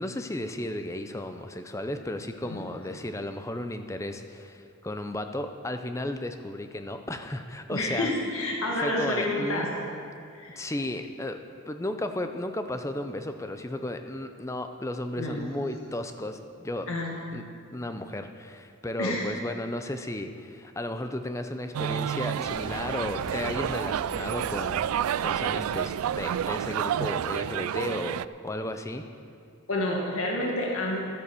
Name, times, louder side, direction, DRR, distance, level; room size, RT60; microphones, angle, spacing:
voice 1, 0.0-8.1 8.8-9.7 10.6-16.9 17.3-17.4 17.7-24.9 25.2-29.1, left 1 dB, 15° left, 7 dB, 0.6 m, -34 dB
voice 2, 7.7-9.9 10.3-10.6 15.2-15.4 16.9-17.1 19.0-19.3 29.7-31.0, left 1 dB, 80° left, -1 dB, 1.8 m, -29 dB
sound 1, 21.7-28.3, right 9 dB, 85° right, 0.3 m, -29 dB
Boom, 22.5-27.4, equal, 20° right, 1.6 m, -45 dB
13.0 x 9.1 x 6.9 m, 2.4 s
head